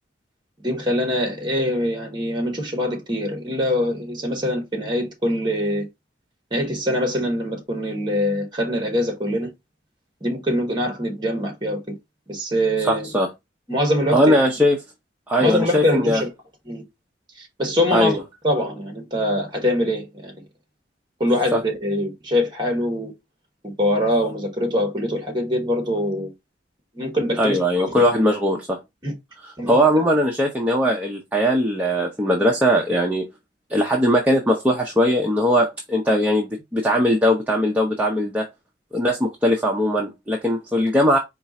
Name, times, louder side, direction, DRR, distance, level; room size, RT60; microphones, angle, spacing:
voice 1, 0.6-5.9 6.5-9.5 10.2-11.8 12.3-13.1 13.7-14.3 15.4-16.3 16.7-16.8 17.4-18.2 18.4-20.4 21.2-23.1 23.6-26.3 26.9-28.1 29.0-29.1 29.6-29.8, left 1 dB, 25° right, 1.4 m, -23 dB
voice 2, 12.8-13.3 14.1-14.8 15.3-16.2 17.9-18.2 21.5-21.6 27.4-28.8 29.7-33.3 33.7-38.5 38.9-41.2, equal, 10° right, 0.6 m, -20 dB
4.4 x 2.4 x 4.0 m
head